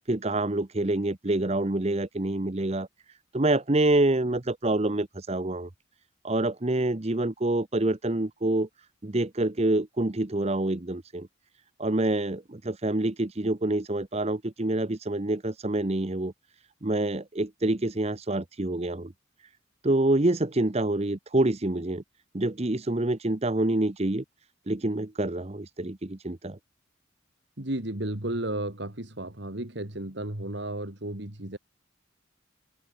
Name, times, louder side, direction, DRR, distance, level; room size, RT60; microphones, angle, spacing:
voice 1, 0.1-5.7 6.2-8.7 9.0-11.3 11.8-16.3 16.8-19.1 19.4-19.5 19.8-22.0 22.3-24.2 24.7-26.6, right 2 dB, 30° right, 0.9 m, -27 dB
voice 2, 27.6-31.6, right 1 dB, 55° right, 2.7 m, -33 dB
open air
head